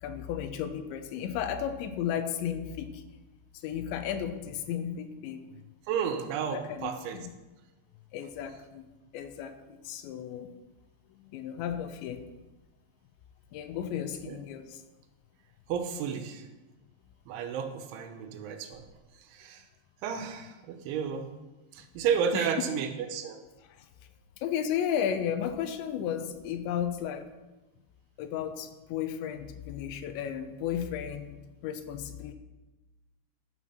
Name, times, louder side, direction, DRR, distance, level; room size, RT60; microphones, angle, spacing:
voice 1, 0.0-3.0 3.6-5.4 6.5-7.2 8.1-8.9 9.1-10.5 11.2-12.3 13.5-14.8 22.3-22.5 23.7-23.9 24.4-27.3 28.2-32.3, left 9 dB, 80° left, 8 dB, 3.0 m, -34 dB
voice 2, 5.9-7.2 14.3-14.4 15.7-16.5 17.3-18.8 19.3-19.6 20.0-21.3 21.7-23.4, right 7 dB, 85° right, 7 dB, 3.3 m, -32 dB
12.0 x 7.6 x 5.8 m, 1.1 s
omnidirectional pair, 5.4 m